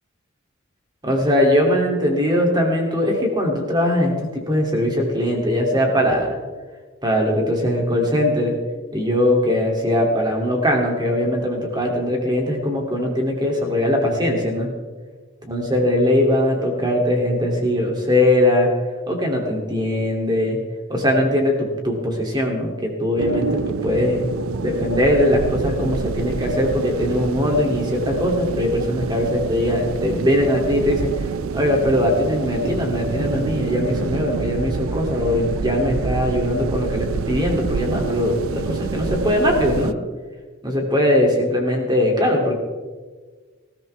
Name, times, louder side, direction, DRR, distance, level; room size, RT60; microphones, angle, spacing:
voice 1, 1.0-6.4 7.0-8.6 8.9-14.7 15.4-18.7 19.1-20.6 20.9-24.3 24.6-39.9 40.6-42.5, left 1 dB, 20° right, 1 dB, 2.6 m, -20 dB
sound 1, 23.2-39.9, right 5 dB, 75° right, 0.4 m, -27 dB
20.0 x 15.5 x 3.4 m, 1.4 s
head